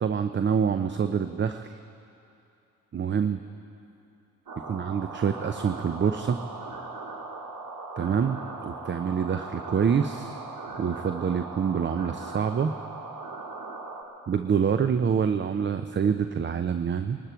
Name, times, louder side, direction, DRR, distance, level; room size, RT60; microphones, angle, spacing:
voice 1, 0.0-1.8 2.9-3.4 4.7-6.4 8.0-10.4 10.8-12.7 14.3-17.2, right 7 dB, 25° right, 9 dB, 0.6 m, -26 dB
sound 1, 4.5-14.0, right 3 dB, 50° right, 2.1 m, -39 dB
21.0 x 12.5 x 4.6 m, 2.7 s
hypercardioid pair, 50°, 44 cm